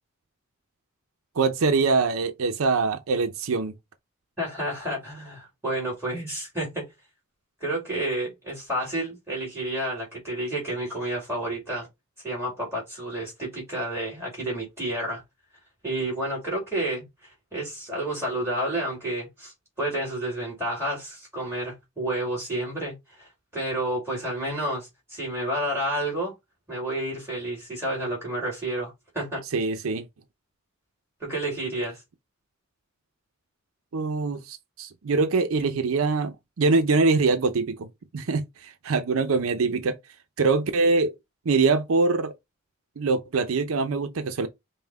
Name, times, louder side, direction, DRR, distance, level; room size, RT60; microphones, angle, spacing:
voice 1, 1.4-3.7 29.5-30.1 33.9-37.9 38.1-40.0 40.4-41.1 41.5-42.3 43.0-44.5, right 4 dB, 80° right, 0.5 m, -23 dB
voice 2, 4.4-6.9 7.6-11.9 12.2-15.2 15.8-26.3 26.7-29.4 31.2-32.0, right 1 dB, 10° right, 2.2 m, -30 dB
5.5 x 2.1 x 3.4 m
head